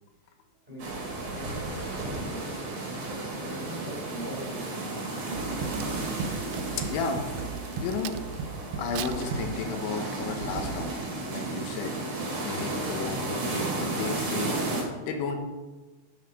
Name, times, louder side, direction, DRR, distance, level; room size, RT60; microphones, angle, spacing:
sound 1, 0.8-14.8, right 2 dB, 40° right, 2.1 m, -33 dB
voice 1, 1.3-6.1, equal, 15° right, -5 dB, 2.0 m, -41 dB
sound 2, 5.3-9.8 10.4-11.1, right 5 dB, 70° right, 2.6 m, -37 dB
Crack, 5.3-8.4 8.8-10.1 10.6-10.8, right 15 dB, 90° right, 3.0 m, -43 dB
voice 2, 6.8-7.5 7.8-8.2 8.8-10.9 11.3-15.4, left 5 dB, 85° left, 5 dB, 3.6 m, -33 dB
13.0 x 7.4 x 5.4 m, 1.2 s
omnidirectional pair, 5.3 m